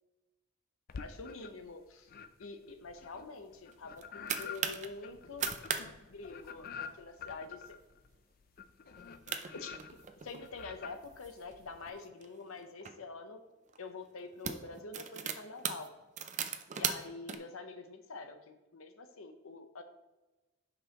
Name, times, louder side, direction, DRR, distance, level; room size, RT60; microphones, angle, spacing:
voice 1, 0.9-2.1 2.4-5.4 6.1-7.8 9.4-9.8 10.2-13.4 13.8-15.9 16.7-19.8, left 3 dB, 85° left, 7 dB, 0.8 m, -46 dB
sound 1, 0.9-1.7 2.1-11.9, left 6 dB, 45° left, 0.4 m, -48 dB
sound 2, 3.7-4.9 5.3-5.8 6.1-6.2 6.5-6.9 7.4-7.7 8.1-8.2 9.0-9.1 9.3-10.5 11.1-12.9 13.7-13.9 14.2-17.4, right 7 dB, 35° right, 0.5 m, -38 dB
9.8 x 5.3 x 3.0 m, 1.1 s
head